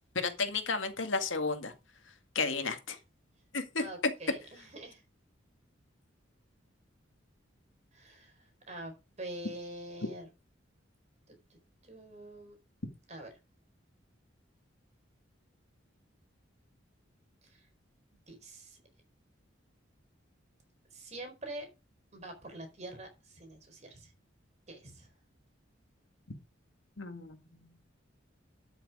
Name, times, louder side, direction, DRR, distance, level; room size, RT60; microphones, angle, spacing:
voice 1, 0.2-1.7 2.4-3.0 3.5-3.8 27.0-27.6, left 4 dB, 75° left, 1.9 m, -33 dB
voice 2, 3.8-5.0 7.9-10.3 11.5-11.6 11.8-12.6 13.1-13.3 17.4-17.7 18.3-18.8 20.9-21.7 22.1-24.1 24.7-25.1, right 1 dB, 35° right, 4.3 m, -45 dB
12.5 x 6.5 x 4.9 m
head